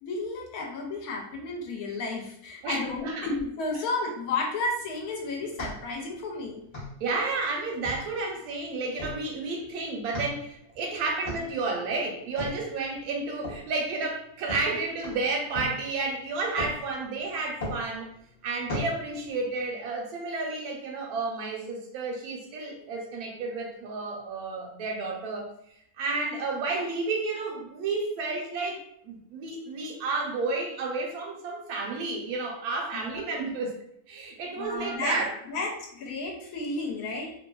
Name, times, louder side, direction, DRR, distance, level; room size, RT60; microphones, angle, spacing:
voice 1, 0.0-6.6 32.9-33.4 34.6-35.2 35.5-37.3, left 3 dB, 80° left, 0 dB, 1.1 m, -32 dB
voice 2, 2.6-3.3 7.0-18.1 18.4-25.5 26.0-33.8 34.1-35.3, right 3 dB, 80° right, 0 dB, 1.1 m, -31 dB
sound 1, 4.8-19.7, left 1 dB, 35° left, 0.7 m, -41 dB
2.7 x 2.4 x 2.2 m, 0.71 s
omnidirectional pair, 1.6 m